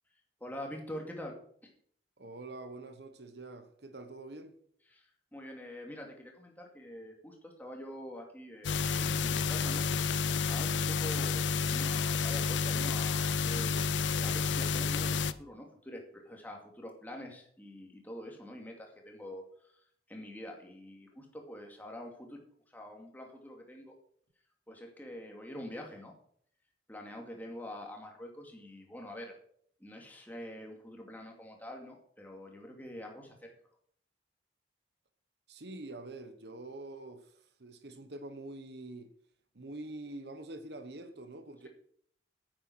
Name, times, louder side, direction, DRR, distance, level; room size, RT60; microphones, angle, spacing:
voice 1, 0.4-1.4 1.6-1.7 4.9-9.9 10.1-13.9 14.2-19.8 20.1-22.4 22.7-23.9 24.7-26.1 26.9-29.4 29.8-33.5, left 1 dB, 10° left, 2.4 m, -45 dB
voice 2, 2.2-4.5 35.5-39.1 39.5-41.7, right 2 dB, 65° right, 1.2 m, -45 dB
sound 1, 8.6-15.3, left 5 dB, 90° left, 0.6 m, -30 dB
9.4 x 9.1 x 6.2 m
head